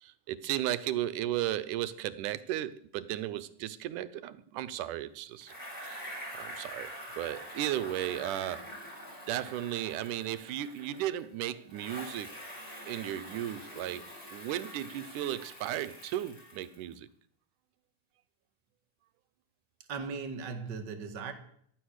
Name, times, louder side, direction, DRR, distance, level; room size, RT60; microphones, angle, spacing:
voice 1, 0.0-5.5 5.8-8.6 9.3-12.4 12.9-17.1, right 12 dB, 85° right, 2.4 m, -35 dB
Bicycle, 5.4-11.3 11.7-16.9, equal, 25° left, 5.8 m, -45 dB
voice 2, 19.9-21.3, right 5 dB, 40° right, 2.1 m, -38 dB
15.5 x 12.5 x 6.5 m
omnidirectional pair, 3.6 m